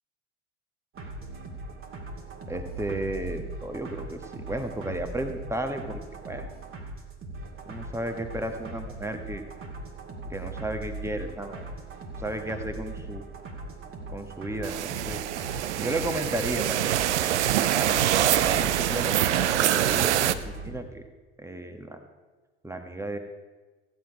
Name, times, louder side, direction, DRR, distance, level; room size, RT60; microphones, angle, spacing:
sound 1, 1.0-20.8, right 2 dB, 35° right, 2.2 m, -40 dB
voice 1, 2.5-6.5 7.7-9.4 10.3-11.7 12.2-13.2 14.1-15.2 15.5-17.0 17.7-21.0 21.4-22.0 22.6-23.2, right 1 dB, 10° right, 6 dB, 1.5 m, -34 dB
sound 2, 14.6-20.3, right 12 dB, 75° right, 0.6 m, -25 dB
15.0 x 9.6 x 4.9 m, 1.3 s
figure-of-eight pair, 65°, 35 cm